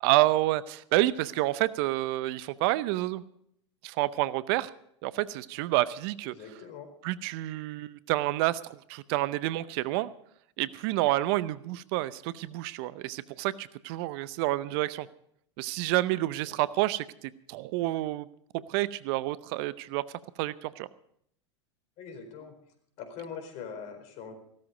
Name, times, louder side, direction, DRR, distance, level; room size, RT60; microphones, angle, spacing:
voice 1, 0.0-3.2 3.8-4.7 5.0-6.4 7.0-10.1 10.6-15.1 15.6-18.3 18.5-20.0 20.4-20.9, right 17 dB, 55° right, 17 dB, 0.7 m, -29 dB
voice 2, 6.3-6.9 16.5-16.6 22.0-22.5 23.0-24.3, left 6 dB, 50° left, 6 dB, 4.4 m, -42 dB
16.5 x 13.0 x 5.2 m, 0.69 s
hypercardioid pair, 85°, 15 cm